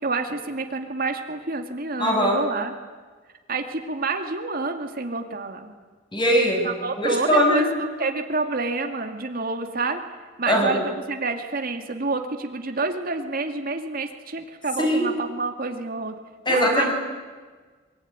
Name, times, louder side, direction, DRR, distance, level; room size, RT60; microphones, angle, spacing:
voice 1, 0.0-2.7 3.5-5.7 6.6-10.0 10.4-16.2 16.5-16.9, right 3 dB, 55° right, 5 dB, 2.2 m, -28 dB
voice 2, 2.0-2.4 6.1-6.7 7.0-7.7 10.5-10.8 14.8-15.0 16.5-16.9, equal, 25° left, 1 dB, 6.0 m, -20 dB
24.0 x 23.0 x 9.6 m, 1.4 s
head